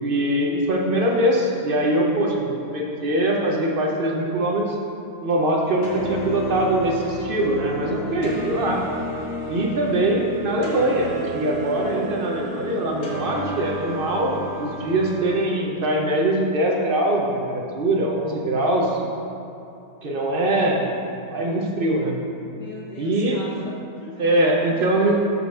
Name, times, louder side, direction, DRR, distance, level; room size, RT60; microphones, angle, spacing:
voice 1, 0.0-4.8 5.2-8.8 9.5-19.0 20.0-20.9 21.3-22.2 22.9-23.4 24.2-25.1, right 1 dB, 65° right, -1 dB, 0.5 m, -22 dB
sound 1, 5.8-15.4, left 1 dB, 45° left, 1.7 m, -32 dB
voice 2, 22.6-24.2 24.7-25.1, left 3 dB, 65° left, -4 dB, 2.0 m, -39 dB
6.9 x 4.9 x 6.1 m, 2.8 s
omnidirectional pair, 2.0 m